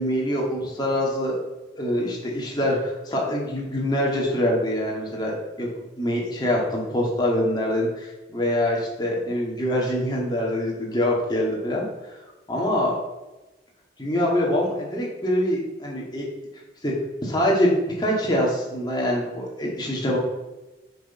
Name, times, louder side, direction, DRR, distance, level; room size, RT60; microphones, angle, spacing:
voice 1, 0.0-1.4 1.8-5.7 6.0-12.2 12.5-13.0 14.0-16.3 16.8-16.9 17.2-20.2, left 1 dB, 20° left, -3 dB, 2.1 m, -24 dB
7.0 x 6.3 x 5.7 m, 1.1 s
head